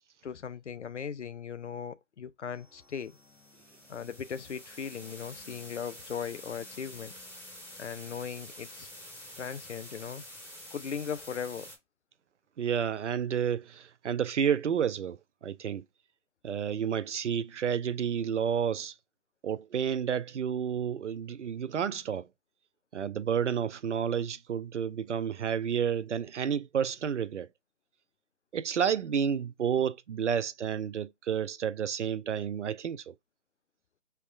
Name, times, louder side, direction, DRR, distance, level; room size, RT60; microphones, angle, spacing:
voice 1, 0.2-3.2 3.9-7.1 7.8-8.9 9.4-10.2 10.7-11.7, left 7 dB, 65° left, 0.6 m, -38 dB
sound 1, 2.5-11.8, equal, 10° left, 0.8 m, -48 dB
voice 2, 12.6-15.8 16.4-18.9 19.4-22.3 22.9-27.5 28.5-33.1, right 8 dB, 70° right, 0.6 m, -30 dB
3.5 x 3.0 x 4.7 m
figure-of-eight pair, 155°, 37 cm